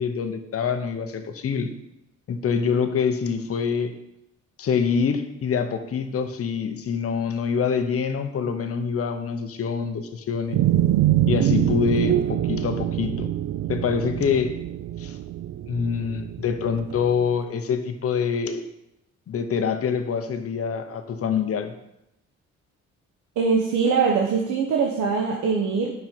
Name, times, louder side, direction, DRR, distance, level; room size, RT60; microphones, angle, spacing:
voice 1, 0.0-1.7 2.3-4.0 4.6-10.6 11.3-13.3 13.7-14.6 15.0-15.2 15.7-18.7 19.3-21.7, left 6 dB, 50° left, 7 dB, 1.0 m, -25 dB
sound 1, 10.5-17.1, right 12 dB, 65° right, 0.5 m, -24 dB
voice 2, 23.4-25.9, right 5 dB, 80° right, 0 dB, 1.2 m, -22 dB
9.9 x 5.5 x 4.6 m, 0.85 s
cardioid pair, 90°, 30 cm